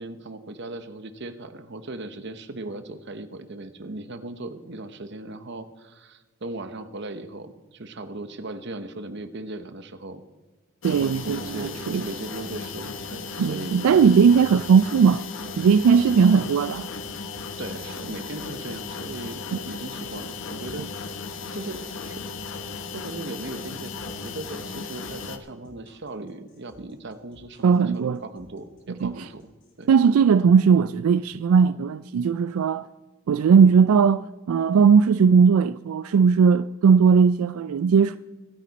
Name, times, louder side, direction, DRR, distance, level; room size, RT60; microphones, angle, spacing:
voice 1, 0.0-10.2 10.9-14.0 17.6-21.2 21.5-22.5 22.9-29.5 29.8-29.9, right 2 dB, 55° right, 1.0 m, -38 dB
sound 1, 10.8-25.4, left 4 dB, 65° left, 1.0 m, -36 dB
voice 2, 10.8-12.0 13.4-15.2 15.6-16.9 19.5-19.6 27.6-28.2 29.0-29.1 29.9-32.9 33.3-38.2, right 6 dB, 80° right, 0.3 m, -18 dB
sound 2, 16.7-29.8, left 1 dB, 40° left, 4.8 m, -55 dB
25.5 x 9.3 x 4.2 m
head